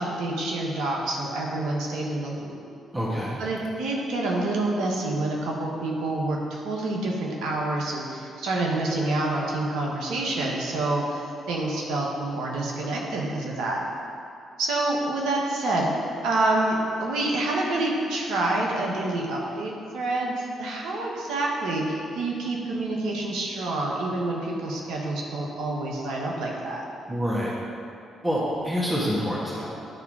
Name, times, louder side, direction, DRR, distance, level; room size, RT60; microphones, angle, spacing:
voice 1, 0.0-2.6 3.4-13.8 14.6-15.9 16.2-26.8, right 2 dB, 75° right, -2 dB, 1.1 m, -27 dB
voice 2, 2.9-3.4 27.1-27.5 28.2-29.7, equal, 20° right, -6 dB, 1.8 m, -27 dB
10.5 x 3.5 x 4.8 m, 2.6 s
hypercardioid pair, 50°, 0 cm